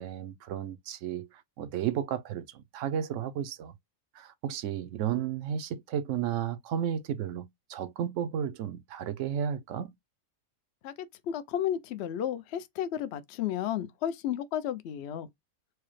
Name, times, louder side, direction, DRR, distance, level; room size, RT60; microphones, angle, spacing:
voice 1, 0.0-3.7 4.1-9.9, right 9 dB, 70° right, 0.9 m, -33 dB
voice 2, 10.8-15.3, left 10 dB, 65° left, 0.8 m, -33 dB
4.7 x 2.0 x 3.1 m
omnidirectional pair, 1.4 m